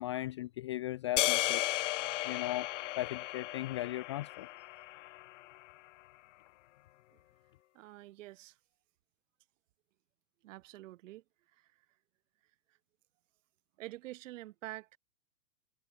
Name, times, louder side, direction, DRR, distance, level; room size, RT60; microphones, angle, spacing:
voice 1, 0.0-1.7 2.2-2.7 3.0-4.5, left 15 dB, 20° left, 0.4 m, -37 dB
sound 1, 1.2-5.5, left 16 dB, 50° left, 2.4 m, -35 dB
voice 2, 7.7-8.6 10.4-11.2 11.6-11.7 13.8-15.0, right 16 dB, 50° right, 5.7 m, -47 dB
figure-of-eight pair, 110°, 48 cm